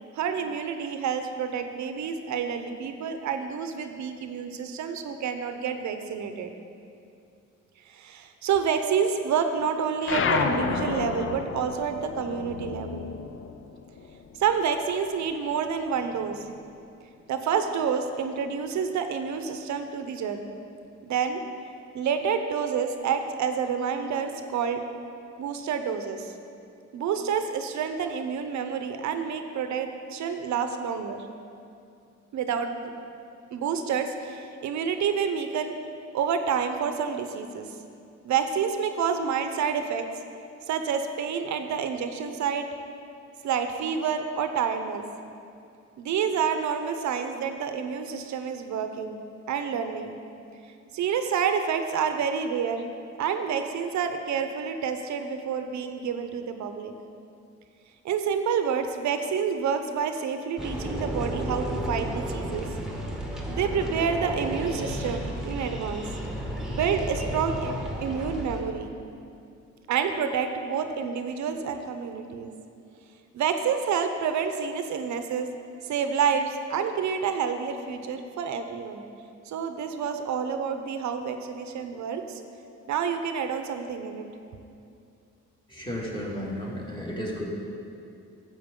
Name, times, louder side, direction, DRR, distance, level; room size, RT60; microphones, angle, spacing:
voice 1, 0.0-6.5 7.9-13.1 14.4-16.4 17.3-20.5 21.1-21.4 21.9-24.8 25.4-26.3 26.9-31.3 32.3-32.7 33.5-35.8 36.1-37.7 38.2-40.1 40.7-42.7 43.4-45.0 46.0-49.2 49.5-50.2 50.9-52.8 53.2-56.9 58.0-62.7 63.5-66.0 66.7-67.8 68.0-68.9 69.9-72.5 73.3-75.5 75.8-79.0 79.4-82.4 82.9-84.3, right 7 dB, 70° right, 7 dB, 0.7 m, -28 dB
sound 1, 10.0-14.9 15.2-16.7, left 5 dB, 45° left, 0.6 m, -31 dB
sound 2, 60.6-68.6, equal, ahead, 1.4 m, -32 dB
voice 2, 85.7-87.5, equal, 15° left, -4 dB, 2.2 m, -33 dB
10.5 x 7.7 x 3.7 m, 2.6 s
cardioid pair, 90°, 30 cm